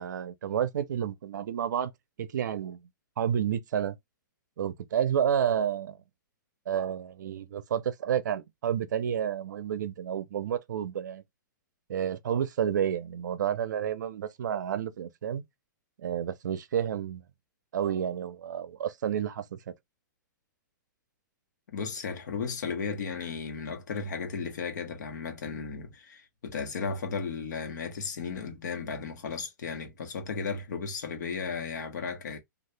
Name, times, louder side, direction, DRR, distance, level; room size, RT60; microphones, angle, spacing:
voice 1, 0.0-1.9 2.2-2.9 3.2-4.0 4.6-6.0 6.7-11.2 11.9-15.4 16.0-17.2 17.7-19.6, right 9 dB, 65° right, 0.6 m, -30 dB
voice 2, 21.7-32.4, left 5 dB, 60° left, 1.0 m, -35 dB
2.8 x 2.4 x 3.2 m
hypercardioid pair, 175°, 11 cm